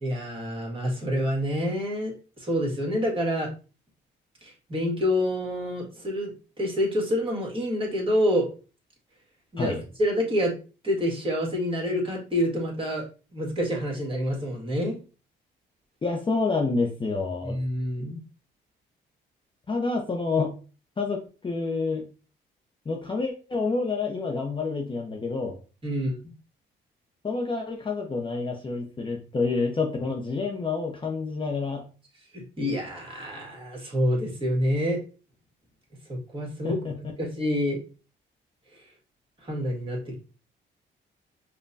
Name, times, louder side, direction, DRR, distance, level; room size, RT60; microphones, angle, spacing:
voice 1, 0.0-3.5 4.4-6.3 6.6-8.5 9.5-10.5 10.8-13.1 13.3-15.0 17.4-18.2 25.8-26.2 32.3-35.0 36.1-36.8 37.2-37.8 39.4-40.1, equal, 25° right, -1 dB, 1.6 m, -27 dB
voice 2, 16.0-17.6 19.7-20.5 21.0-22.0 22.9-25.6 27.2-31.8 36.6-36.9, left 4 dB, 25° left, 1 dB, 0.6 m, -28 dB
5.1 x 2.2 x 2.6 m, 0.35 s
cardioid pair, 90°, 20 cm